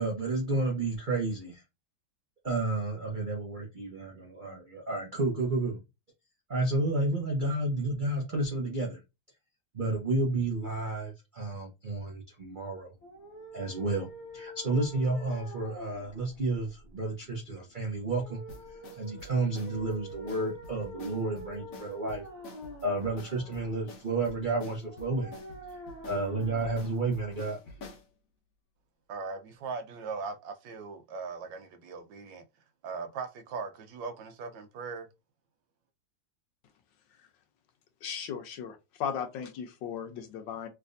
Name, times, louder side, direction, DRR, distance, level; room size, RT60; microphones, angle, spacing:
voice 1, 0.0-1.6 2.4-5.8 6.5-9.0 9.7-12.9 13.5-14.1 14.3-18.4 19.0-22.2 22.8-25.3 26.1-27.6, right 2 dB, 60° right, 0.5 m, -31 dB
sound 1, 13.0-27.9, right 1 dB, 30° left, 0.8 m, -47 dB
sound 2, 18.5-28.1, left 2 dB, 55° left, 1.1 m, -48 dB
voice 2, 29.1-32.4 32.8-35.1, right 4 dB, 75° right, 1.3 m, -39 dB
voice 3, 38.0-40.7, left 7 dB, 75° left, 1.3 m, -36 dB
3.3 x 3.2 x 2.6 m
omnidirectional pair, 2.1 m